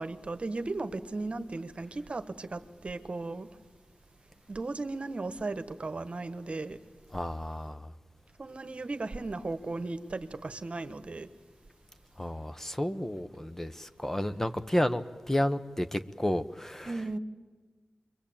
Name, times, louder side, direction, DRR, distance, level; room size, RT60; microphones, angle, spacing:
voice 1, 0.0-3.5 4.5-6.8 8.4-11.3 16.8-17.2, right 3 dB, 45° right, 1.4 m, -36 dB
voice 2, 7.1-7.9 12.2-17.0, left 1 dB, 15° left, 1.1 m, -31 dB
27.0 x 23.0 x 8.8 m
wide cardioid pair, 70°, 3 cm